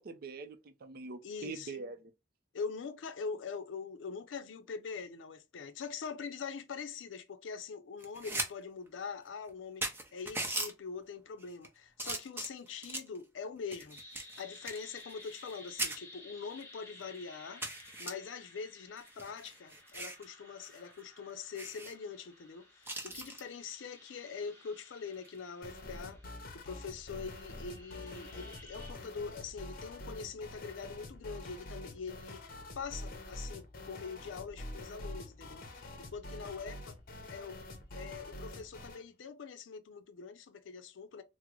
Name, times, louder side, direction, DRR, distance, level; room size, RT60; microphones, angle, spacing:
voice 1, 0.0-2.1, right 4 dB, 55° right, 0.5 m, -44 dB
voice 2, 1.2-1.8 2.5-14.0 14.4-26.2 26.5-37.0 37.3-37.6 37.9-41.2, left 5 dB, 85° left, 0.4 m, -43 dB
sound 1, 8.0-8.5 8.9-9.0 9.5-9.6 9.8-10.7 11.4-11.7 12.0-13.2 13.7-15.5 15.8-16.0 16.6-16.7 17.0-17.1 17.6-18.1 19.0-20.2 20.6-20.8 21.1-21.2 21.5-21.9 22.8-23.4 25.1-25.4, right 2 dB, 10° right, 0.6 m, -39 dB
sound 2, 13.9-28.9, left 2 dB, 15° left, 1.0 m, -56 dB
sound 3, 25.6-39.0, left 1 dB, 50° left, 0.7 m, -46 dB
3.6 x 2.0 x 3.0 m
head